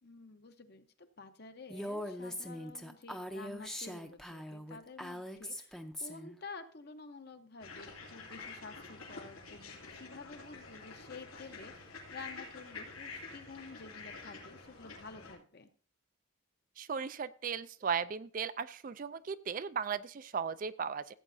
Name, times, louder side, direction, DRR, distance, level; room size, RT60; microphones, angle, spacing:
voice 1, 0.0-15.7, left 4 dB, 50° left, 8 dB, 0.9 m, -51 dB
Female speech woman speaking, 1.7-6.4, equal, ahead, 0.6 m, -41 dB
sound 1, 7.6-15.3, left 4 dB, 90° left, 2.8 m, -48 dB
voice 2, 16.8-21.1, right 6 dB, 40° right, 14 dB, 0.3 m, -36 dB
15.5 x 8.5 x 2.7 m, 0.43 s
head